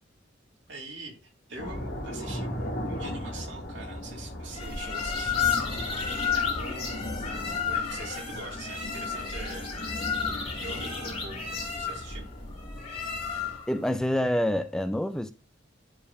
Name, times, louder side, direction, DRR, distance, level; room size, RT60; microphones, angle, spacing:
voice 1, 0.7-7.0 7.7-9.7 10.4-11.4 11.8-12.3, right 3 dB, 80° right, 2.5 m, -43 dB
sound 1, 1.6-13.6, equal, 60° left, 2.3 m, -37 dB
sound 2, 4.5-13.8, left 6 dB, 30° left, 2.7 m, -32 dB
voice 2, 13.7-15.3, equal, 5° left, 0.4 m, -27 dB
11.0 x 5.1 x 2.3 m
head